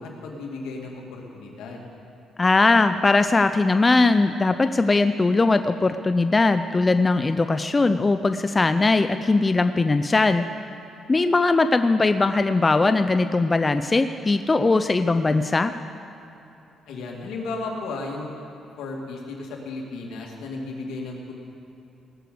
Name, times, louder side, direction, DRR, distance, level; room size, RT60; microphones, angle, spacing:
voice 1, 0.0-1.9 16.9-18.4 18.8-21.3, left 3 dB, 85° left, -1 dB, 2.4 m, -34 dB
voice 2, 2.4-10.4 11.1-15.7, left 3 dB, 25° left, 9 dB, 0.5 m, -20 dB
19.5 x 6.7 x 7.8 m, 2.9 s
cardioid pair, 90°, 0 cm